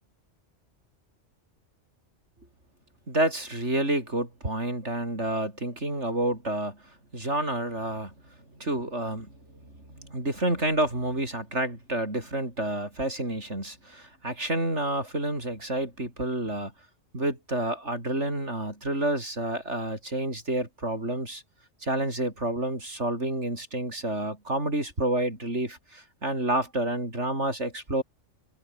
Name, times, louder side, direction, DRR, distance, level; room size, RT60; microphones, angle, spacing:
voice 1, 3.1-6.8 7.1-8.1 8.6-16.7 17.1-21.4 21.8-28.0, right 1 dB, 65° right, 7.5 m, -29 dB
omnidirectional pair, 1.3 m